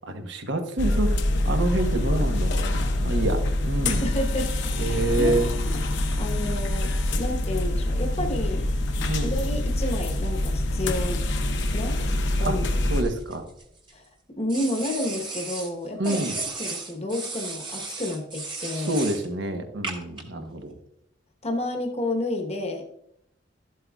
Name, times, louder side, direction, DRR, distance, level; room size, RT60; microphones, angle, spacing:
voice 1, 0.1-1.1 1.4-4.1 4.8-5.5 9.1-9.4 12.4-12.6 12.9-13.4 16.0-16.3 18.7-20.7, right 2 dB, 65° right, 6 dB, 1.0 m, -27 dB
sound 1, 0.8-13.0, left 1 dB, 65° left, 0.9 m, -25 dB
voice 2, 3.9-5.4 5.7-6.9 7.2-8.6 9.2-11.2 11.7-12.0 12.4-12.7 13.9-14.0 14.3-16.2 16.6-18.9 20.4-20.5 21.4-22.8, left 1 dB, 35° left, 2 dB, 1.0 m, -30 dB
sound 2, 12.9-13.9 14.5-15.7 16.0-19.3 19.8-20.2, right 3 dB, 25° right, 1.2 m, -35 dB
12.5 x 7.9 x 2.3 m, 0.77 s
head